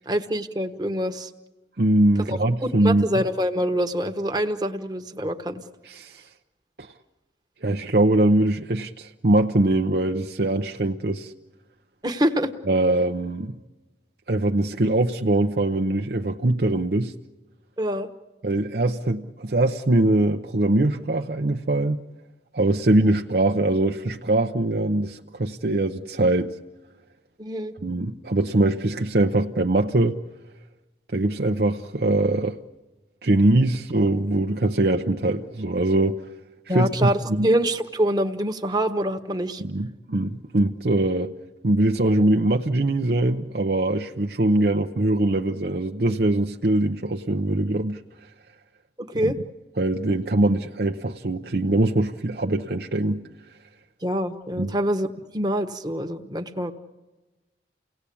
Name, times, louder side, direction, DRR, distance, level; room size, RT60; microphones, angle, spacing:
voice 1, 0.1-1.3 2.3-5.6 12.0-12.5 17.8-18.1 27.4-27.7 36.7-39.6 49.0-49.4 54.0-55.1 55.3-56.7, equal, 20° right, 1.2 m, -25 dB
voice 2, 1.8-3.2 5.8-6.2 6.8-6.9 7.6-11.3 12.7-13.5 14.3-17.1 18.4-22.0 22.5-26.6 27.8-30.2 31.1-32.6 33.2-36.2 36.7-37.5 39.6-41.3 41.6-48.0 49.2-49.3 49.8-53.2 54.6-54.7, right 2 dB, 55° right, 0.8 m, -22 dB
30.0 x 18.0 x 8.6 m
head